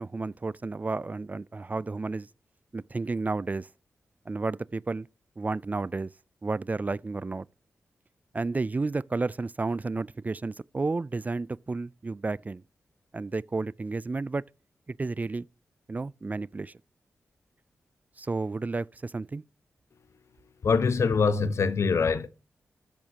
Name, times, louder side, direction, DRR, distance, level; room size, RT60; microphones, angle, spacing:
voice 1, 0.0-2.3 2.7-3.7 4.3-5.1 5.4-6.1 6.4-7.5 8.3-12.6 13.1-14.4 14.9-15.5 15.9-16.7 18.2-19.4, right 3 dB, 30° right, 0.4 m, -31 dB
voice 2, 20.6-22.3, left 5 dB, 65° left, 1.2 m, -24 dB
13.5 x 8.7 x 2.9 m
cardioid pair, 65°, 5 cm